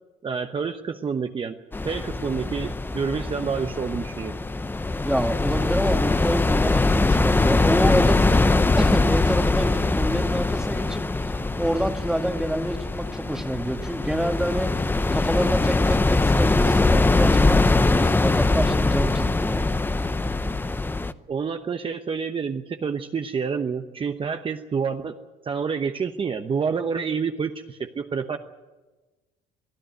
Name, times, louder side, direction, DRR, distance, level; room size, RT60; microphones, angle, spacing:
voice 1, 0.2-1.6 1.8-4.4 21.3-25.1 25.4-28.4, right 6 dB, 30° right, 6 dB, 1.0 m, -28 dB
sound 1, 1.7-21.1, left 2 dB, 10° left, 0.7 m, -22 dB
voice 2, 5.1-8.5 8.8-11.0 11.6-14.7 15.1-19.6, equal, 5° right, 5 dB, 1.8 m, -27 dB
23.5 x 13.5 x 9.2 m, 1.2 s
cardioid pair, 110°, 17 cm